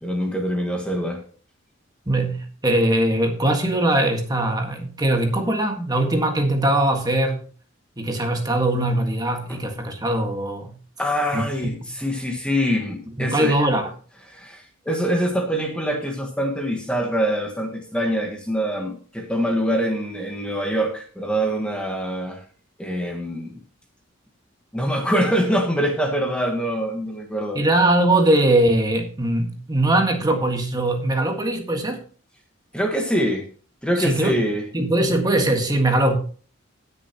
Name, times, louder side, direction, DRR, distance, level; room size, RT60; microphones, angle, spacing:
voice 1, 0.0-1.2 9.5-9.6 11.0-13.6 14.3-22.4 22.8-23.6 24.7-27.6 32.7-33.5 33.8-34.6, equal, 5° left, 1.4 m, -24 dB
voice 2, 2.1-7.5 8.0-10.7 11.3-11.4 13.2-13.9 27.5-32.0 34.0-34.4 34.7-36.1, right 1 dB, 20° right, 1.7 m, -21 dB
18.0 x 6.7 x 2.9 m
head